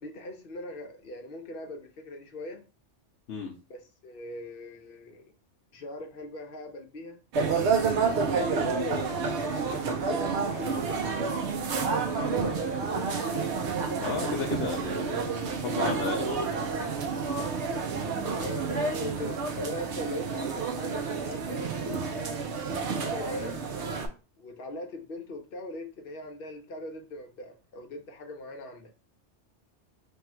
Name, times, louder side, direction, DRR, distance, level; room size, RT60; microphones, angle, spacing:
voice 1, 0.0-2.6 3.7-5.3 5.7-7.2 8.0-9.1 9.5-11.4 12.1-13.5 13.8-14.0 18.3-22.0 22.8-23.6 24.4-28.9, left 1 dB, 55° left, 3 dB, 0.9 m, -40 dB
sound 1, 7.3-24.1, right 5 dB, 75° right, 0.9 m, -29 dB
voice 2, 14.0-16.5, left 6 dB, 80° left, -1 dB, 1.0 m, -34 dB
3.4 x 2.3 x 4.3 m, 0.33 s
omnidirectional pair, 1.2 m